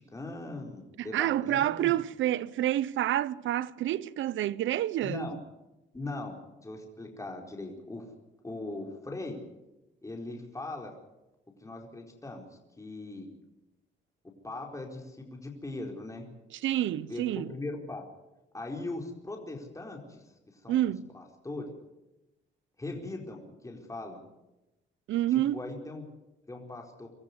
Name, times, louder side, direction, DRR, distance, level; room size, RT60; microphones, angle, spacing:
voice 1, 0.0-2.0 5.0-5.4 5.9-8.0 8.4-9.4 10.0-10.9 11.6-13.3 14.4-16.3 17.1-18.1 18.5-20.2 20.5-20.8 21.1-21.7 22.8-24.2 25.3-26.0 26.5-27.1, left 2 dB, 15° left, 4.5 m, -40 dB
voice 2, 1.0-5.3 16.5-17.5 20.7-21.1 25.1-25.6, right 13 dB, 75° right, 0.8 m, -28 dB
25.0 x 13.5 x 9.7 m
cardioid pair, 90°, 20 cm